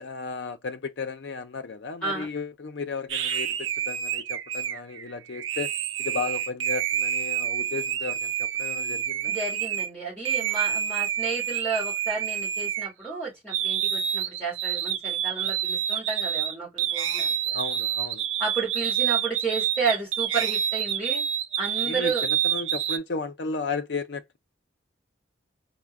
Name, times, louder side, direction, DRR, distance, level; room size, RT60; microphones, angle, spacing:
voice 1, 0.0-5.7 6.0-9.3 17.5-18.2 21.8-24.4, left 4 dB, 65° left, 0.6 m, -34 dB
sound 1, 3.1-9.9 10.2-13.2 13.5-23.0, right 9 dB, 85° right, 0.5 m, -28 dB
voice 2, 9.3-17.6 18.4-21.2 21.6-22.3, right 4 dB, 5° left, 2.9 m, -32 dB
4.3 x 2.1 x 3.5 m
head